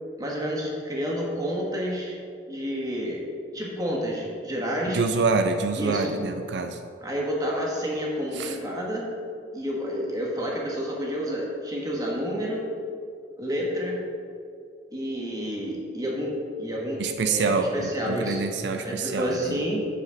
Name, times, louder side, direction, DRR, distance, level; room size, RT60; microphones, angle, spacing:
voice 1, 0.2-2.2 2.5-3.2 3.5-5.0 5.8-6.1 7.0-9.1 9.5-12.6 13.4-14.0 14.9-18.4 18.8-19.9, equal, 20° right, -3 dB, 1.6 m, -29 dB
voice 2, 4.9-6.8 8.3-8.6 17.0-19.6, right 4 dB, 80° right, 7 dB, 0.5 m, -26 dB
8.2 x 7.7 x 4.0 m, 2.4 s
head